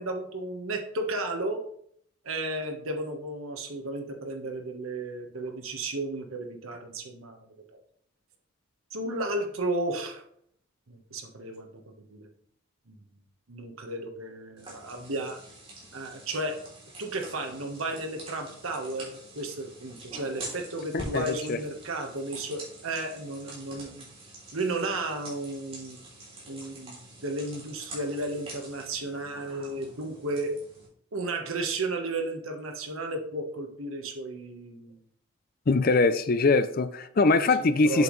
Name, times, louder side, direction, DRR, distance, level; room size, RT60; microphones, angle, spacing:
voice 1, 0.0-1.6 2.2-7.4 8.9-10.2 10.9-11.7 12.1-12.3 12.9-13.1 13.5-15.4 15.9-16.6 17.0-24.1 24.5-26.0 26.5-30.5 31.1-35.0 37.6-38.0, right 2 dB, 80° right, 1.3 m, -33 dB
sound 1, 14.6-30.9, right 1 dB, 25° right, 3.2 m, -46 dB
voice 2, 20.9-21.6 35.7-38.0, left 3 dB, 45° left, 0.5 m, -23 dB
7.9 x 7.2 x 3.2 m
head